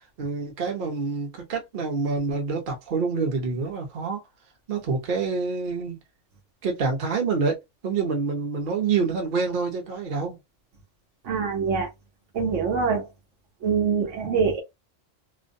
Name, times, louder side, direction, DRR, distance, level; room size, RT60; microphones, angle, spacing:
voice 1, 0.2-4.2 4.7-6.0 6.6-7.6 7.8-10.4, right 4 dB, 50° right, 0.8 m, -27 dB
voice 2, 11.2-11.9 12.3-13.1 13.6-14.6, right 5 dB, 75° right, 1.0 m, -24 dB
2.4 x 2.1 x 2.6 m
omnidirectional pair, 1.3 m